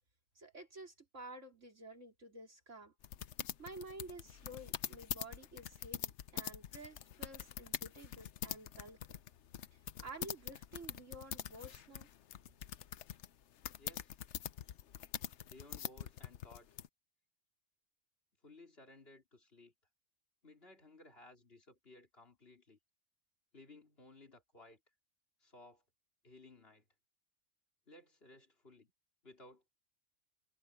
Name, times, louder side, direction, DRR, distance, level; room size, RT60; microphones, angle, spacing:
voice 1, 0.4-2.9 3.6-9.0 10.0-12.1, right 2 dB, 70° right, 4.3 m, -51 dB
sound 1, 3.0-16.9, left 10 dB, 65° left, 1.0 m, -44 dB
voice 2, 13.8-14.2 15.4-16.7 18.4-19.7 20.4-22.8 23.5-24.8 25.4-25.8 26.2-26.9 27.9-28.9 29.2-29.7, left 2 dB, 50° left, 4.0 m, -59 dB
omnidirectional pair, 1.3 m